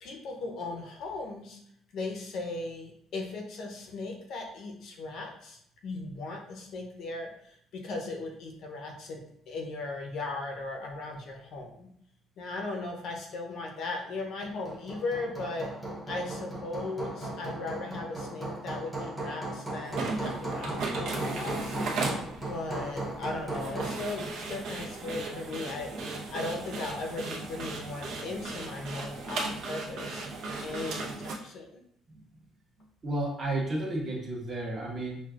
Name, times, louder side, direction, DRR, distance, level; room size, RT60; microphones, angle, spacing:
voice 1, 0.0-1.6 1.9-11.9 12.4-15.7 16.1-21.8 22.5-25.9 26.3-30.2 30.6-31.8, left 3 dB, 50° left, 1 dB, 0.7 m, -37 dB
Hammer, 14.4-24.1, right 1 dB, ahead, 0.9 m, -37 dB
sound 1, 19.8-31.4, right 3 dB, 55° right, 0.7 m, -36 dB
voice 2, 33.0-35.2, right 1 dB, 30° right, -3 dB, 1.0 m, -32 dB
6.0 x 2.3 x 2.4 m, 0.68 s
cardioid pair, 180°, 0 cm